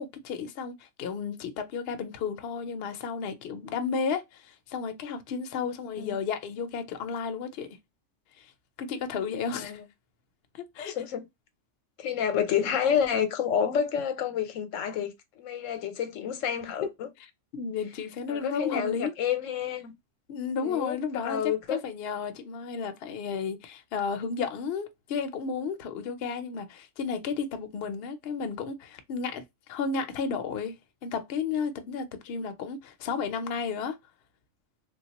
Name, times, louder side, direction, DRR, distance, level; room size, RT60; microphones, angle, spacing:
voice 1, 0.0-7.7 8.4-8.5 8.8-9.8 10.5-11.0 17.5-19.1 20.3-29.4 29.7-30.8 31.0-34.0, left 5 dB, 60° left, 0.7 m, -33 dB
voice 2, 10.8-11.2 12.0-17.1 18.3-19.9 20.6-21.0 21.2-21.8 32.4-32.5, left 8 dB, 90° left, 1.0 m, -29 dB
3.5 x 2.3 x 2.8 m
omnidirectional pair, 1.3 m